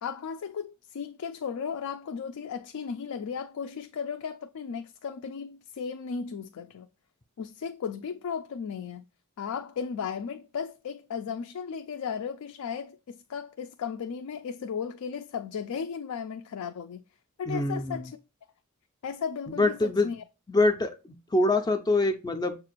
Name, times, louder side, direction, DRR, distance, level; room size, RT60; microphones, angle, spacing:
voice 1, 0.0-6.9 7.4-9.0 9.4-17.0 17.4-18.2 19.0-20.2, left 6 dB, 80° left, 0.4 m, -35 dB
voice 2, 17.5-18.1 19.5-20.2 20.5-21.0 21.3-22.6, left 2 dB, 20° left, 0.4 m, -25 dB
6.7 x 2.5 x 2.9 m
head